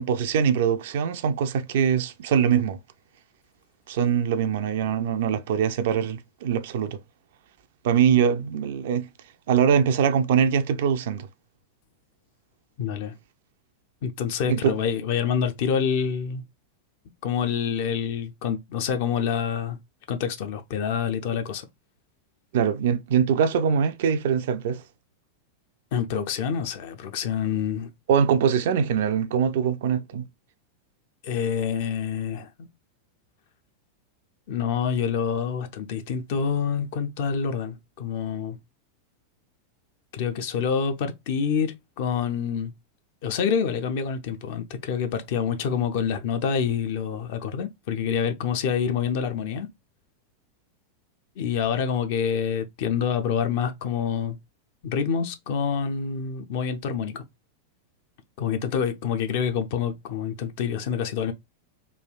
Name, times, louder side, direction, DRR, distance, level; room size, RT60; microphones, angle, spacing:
voice 1, 0.0-2.8 3.9-7.0 7.8-9.1 9.5-11.3 14.5-14.7 22.5-24.8 28.1-30.2, right 7 dB, 55° right, 0.3 m, -23 dB
voice 2, 12.8-13.1 14.0-16.4 17.2-19.8 20.1-21.7 25.9-27.9 31.2-32.7 34.5-38.6 40.1-42.7 43.2-49.7 51.4-54.4 54.8-57.2 58.4-61.3, left 7 dB, 50° left, 0.5 m, -27 dB
3.2 x 2.3 x 2.2 m
figure-of-eight pair, 90°, 0 cm